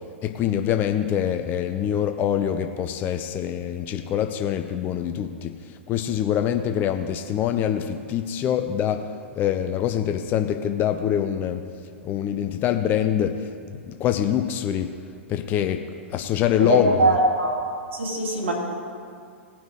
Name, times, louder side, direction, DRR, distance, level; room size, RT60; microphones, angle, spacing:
voice 1, 0.2-11.7 12.0-14.9 15.3-15.8 16.1-17.0, left 10 dB, 25° left, 7 dB, 0.5 m, -25 dB
voice 2, 16.6-17.6 17.9-18.5, right 2 dB, 65° right, -2 dB, 2.9 m, -21 dB
17.5 x 6.0 x 4.7 m, 2.2 s
figure-of-eight pair, 105°, 7 cm